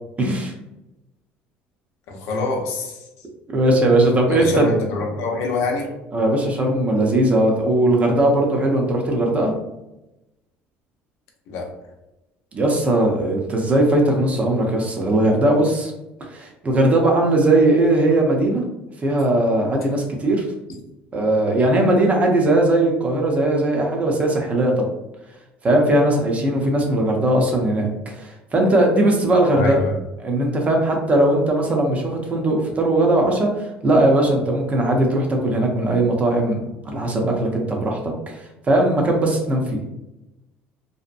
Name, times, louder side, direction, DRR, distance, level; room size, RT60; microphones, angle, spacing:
voice 1, 0.2-0.5 3.5-4.6 6.1-9.5 12.5-15.9 16.3-18.6 19.0-20.5 21.1-24.9 25.6-29.8 30.2-36.6 36.8-39.8, right 1 dB, 30° right, 1 dB, 0.7 m, -19 dB
voice 2, 2.1-3.0 4.3-5.9 11.5-11.7 29.5-30.0, left 2 dB, 70° left, 1 dB, 0.6 m, -25 dB
2.7 x 2.1 x 2.5 m, 0.94 s
supercardioid pair, 105°, 5 cm